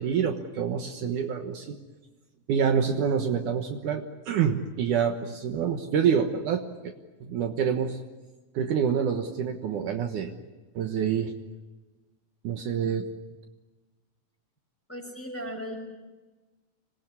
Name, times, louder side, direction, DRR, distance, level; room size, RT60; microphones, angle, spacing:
voice 1, 0.0-1.8 2.5-6.9 7.2-8.0 8.5-10.3 10.7-11.3 12.4-13.1, right 7 dB, 70° right, 5 dB, 2.7 m, -27 dB
voice 2, 14.9-15.7, equal, 5° left, 2 dB, 5.6 m, -36 dB
26.5 x 20.5 x 9.8 m, 1.2 s
omnidirectional pair, 3.9 m